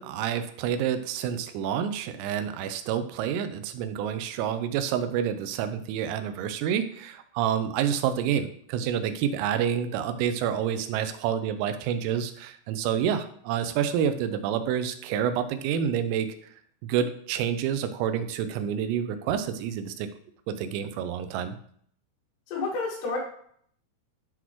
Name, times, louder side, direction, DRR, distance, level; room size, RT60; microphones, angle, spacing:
voice 1, 0.0-16.3 16.8-20.1 20.5-21.6, right 9 dB, 85° right, 9 dB, 3.2 m, -28 dB
voice 2, 22.5-23.2, left 3 dB, 75° left, -4 dB, 4.5 m, -29 dB
11.5 x 4.0 x 3.0 m, 0.62 s
omnidirectional pair, 5.9 m